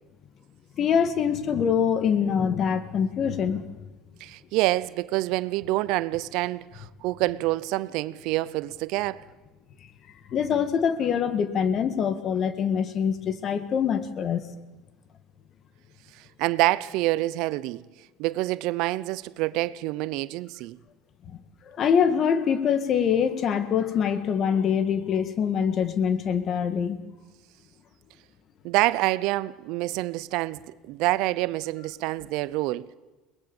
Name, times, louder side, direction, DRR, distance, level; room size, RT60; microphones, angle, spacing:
voice 1, 0.8-3.6 10.3-14.5 21.7-27.0, left 7 dB, 45° left, 1.9 m, -24 dB
voice 2, 4.2-9.2 16.1-17.8 18.2-20.8 28.6-32.9, right 18 dB, 70° right, 0.6 m, -27 dB
22.5 x 19.5 x 7.1 m
supercardioid pair, 95°, 0 cm